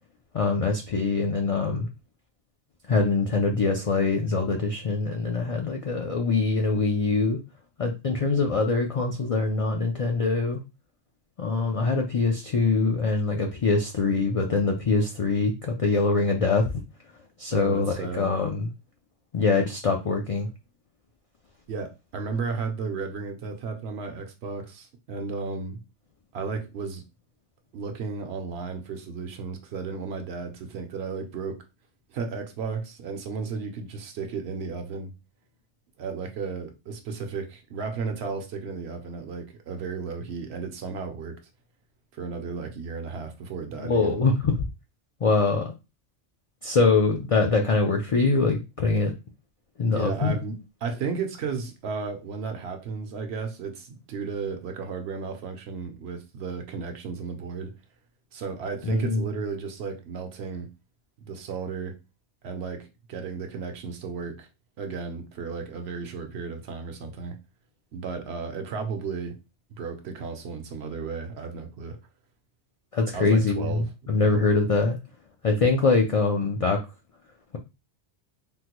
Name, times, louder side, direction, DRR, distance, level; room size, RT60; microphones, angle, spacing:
voice 1, 0.3-1.9 2.9-7.4 7.8-10.6 11.4-16.8 17.4-18.7 19.3-20.5 43.8-44.6 45.2-45.7 46.6-49.1 49.8-50.3 58.8-59.2 72.9-75.0 75.4-76.8, left 3 dB, 60° left, 0.3 m, -23 dB
voice 2, 17.5-18.3 21.7-25.8 26.3-27.0 27.7-31.6 32.1-35.1 36.0-41.4 42.1-44.2 49.8-57.7 58.3-60.7 61.2-62.0 62.4-64.5 64.8-67.4 67.9-69.4 69.7-72.0 73.1-73.9 74.1-74.5, right 5 dB, 70° right, 0.9 m, -34 dB
3.5 x 2.1 x 2.9 m
omnidirectional pair, 1.1 m